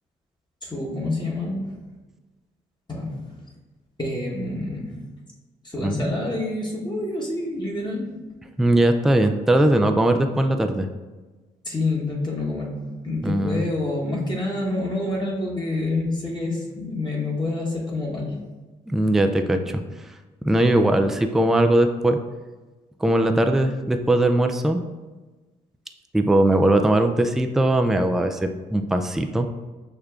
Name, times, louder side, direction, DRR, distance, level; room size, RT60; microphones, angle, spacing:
voice 1, 0.6-1.9 2.9-3.4 4.0-5.1 5.6-8.2 11.6-18.4, left 2 dB, 25° left, -3 dB, 1.2 m, -27 dB
voice 2, 8.6-10.9 13.2-13.6 18.9-19.8 20.4-22.2 23.0-24.8 26.1-29.5, right 1 dB, ahead, 6 dB, 0.3 m, -20 dB
6.4 x 2.2 x 2.4 m, 1.2 s
supercardioid pair, 50°, 18 cm